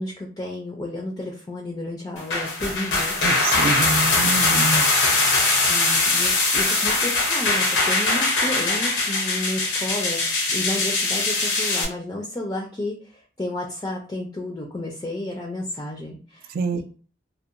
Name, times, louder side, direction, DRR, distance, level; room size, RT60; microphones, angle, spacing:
voice 1, 0.0-3.1 5.7-16.8, left 1 dB, 20° left, 0 dB, 0.4 m, -32 dB
sound 1, 2.2-11.8, left 3 dB, 90° left, 0.8 m, -21 dB
voice 2, 3.2-4.9 5.6-5.7 16.5-16.8, right 3 dB, 50° right, 8 dB, 0.3 m, -26 dB
2.7 x 2.1 x 2.4 m, 0.41 s
head